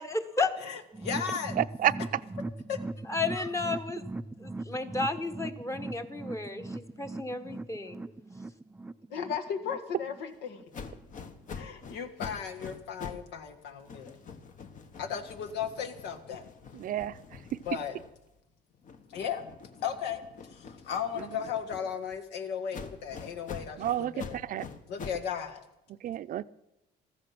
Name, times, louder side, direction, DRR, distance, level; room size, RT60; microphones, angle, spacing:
voice 1, 0.0-0.5 3.0-4.0 4.4-8.1, left 3 dB, 15° left, 7 dB, 1.2 m, -33 dB
voice 2, 0.6-1.6 2.7-2.8 9.1-10.6 11.5-14.2 15.0-16.4 17.7-17.9 19.1-19.5 19.8-20.2 20.5-24.4 24.9-25.6, left 7 dB, 80° left, 6 dB, 1.7 m, -35 dB
sound 1, 0.9-10.2 10.5-10.6 11.0-11.1, right 2 dB, 10° right, 0.4 m, -40 dB
voice 3, 1.6-1.9 16.7-17.4 21.2-21.3 23.8-24.7 26.0-26.4, right 12 dB, 55° right, 14 dB, 0.6 m, -30 dB
sound 2, 10.7-13.3 13.6-18.4 18.8-22.2 22.7-25.3, left 5 dB, 50° left, 1.3 m, -45 dB
14.0 x 14.0 x 5.9 m, 0.93 s
cardioid pair, 110°, 17 cm